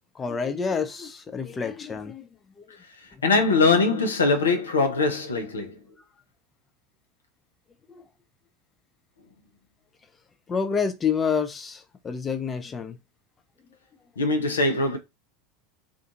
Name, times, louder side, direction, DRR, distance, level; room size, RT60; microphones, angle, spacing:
voice 1, 0.2-2.3 10.5-13.0, left 6 dB, 20° left, 0.4 m, -28 dB
voice 2, 3.2-5.8 14.2-15.0, left 3 dB, 75° left, 0.6 m, -22 dB
2.4 x 2.3 x 2.7 m
figure-of-eight pair, 80°, 0 cm